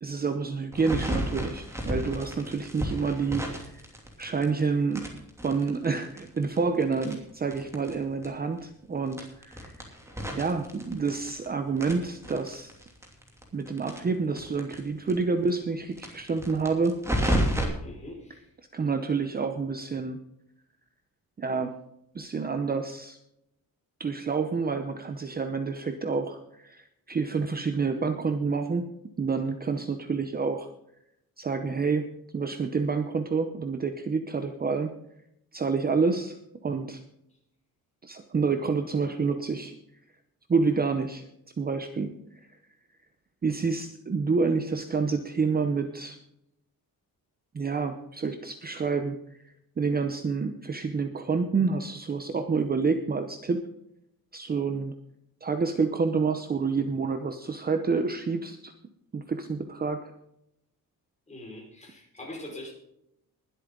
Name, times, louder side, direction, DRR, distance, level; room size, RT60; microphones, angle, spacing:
voice 1, 0.0-3.8 4.2-5.1 5.4-9.7 10.4-12.7 13.5-17.0 18.7-20.2 21.4-21.7 22.1-23.2 24.0-28.9 29.2-30.7 31.4-32.1 32.3-34.9 35.5-36.4 36.6-37.0 38.0-39.7 40.5-41.2 41.6-42.1 43.4-46.2 47.5-49.2 49.4-53.6 54.3-54.9 55.4-58.7 59.1-60.1, right 4 dB, 25° right, 7 dB, 0.8 m, -28 dB
sound 1, 0.7-4.6 4.9-7.9 8.2-8.3 8.6-8.7 9.1-11.5 11.8-14.8 15.1-15.2 15.4-15.5 15.9-17.6, equal, 10° right, 2.8 m, -32 dB
voice 2, 17.8-18.5 61.3-62.7, left 1 dB, 20° left, -1 dB, 5.2 m, -42 dB
21.0 x 8.3 x 3.9 m, 0.79 s
wide cardioid pair, 165°, 36 cm